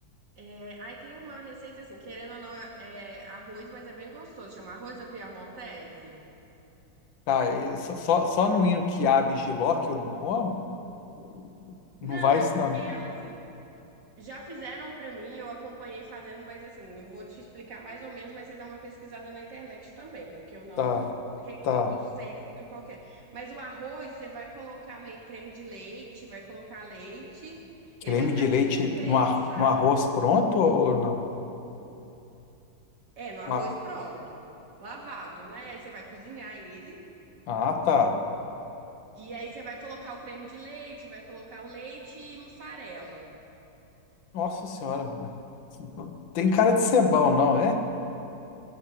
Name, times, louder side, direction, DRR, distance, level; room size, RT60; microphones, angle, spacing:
voice 1, 0.4-6.2 12.0-13.4 14.2-29.9 33.2-34.4 34.8-37.0 39.1-43.3, right 2 dB, 60° right, -3 dB, 3.1 m, -42 dB
voice 2, 7.3-10.6 12.0-12.8 20.8-21.1 21.6-21.9 28.1-31.2 33.5-33.6 37.5-38.2 44.3-45.3 45.8-47.8, left 5 dB, 75° left, 5 dB, 1.8 m, -24 dB
21.5 x 8.2 x 7.5 m, 2.9 s
omnidirectional pair, 2.1 m